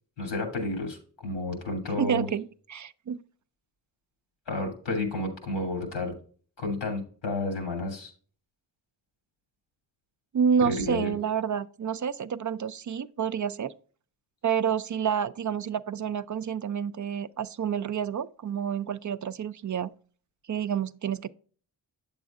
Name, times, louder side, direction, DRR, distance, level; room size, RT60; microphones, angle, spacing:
voice 1, 0.2-2.3 4.5-6.1 6.6-8.1 10.6-11.1, left 2 dB, 80° left, 2.8 m, -31 dB
voice 2, 2.0-3.2 10.3-13.7 14.4-19.9 20.5-21.3, right 7 dB, 45° right, 0.5 m, -29 dB
8.3 x 7.2 x 2.4 m
cardioid pair, 50°, 42 cm